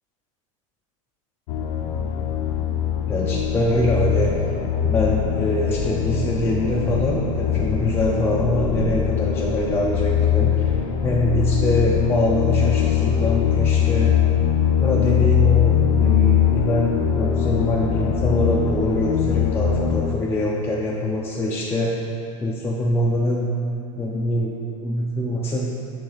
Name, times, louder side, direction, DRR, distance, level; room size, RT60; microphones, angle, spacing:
sound 1, 1.5-20.0, left 9 dB, 65° left, 0.6 m, -21 dB
voice 1, 3.1-4.5 4.8-14.2 14.8-22.0 22.4-23.5 24.0-25.7, left 1 dB, 15° left, -5 dB, 0.5 m, -24 dB
6.7 x 3.3 x 5.1 m, 2.7 s
supercardioid pair, 125°, 18 cm